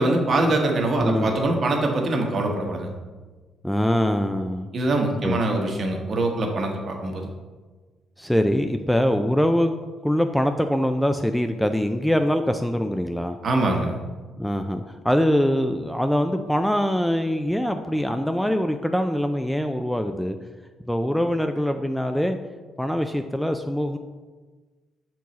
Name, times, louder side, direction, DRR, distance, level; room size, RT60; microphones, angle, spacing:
voice 1, 0.0-2.9 4.7-7.3 13.4-14.0, right 2 dB, 50° right, 2 dB, 1.1 m, -23 dB
voice 2, 1.0-1.3 3.6-4.7 5.2-5.4 8.2-9.8 10.0-13.4 14.4-20.4 20.9-22.4 22.8-24.0, equal, 5° left, 7 dB, 0.3 m, -23 dB
6.1 x 4.6 x 4.1 m, 1.3 s
cardioid pair, 90°, 0 cm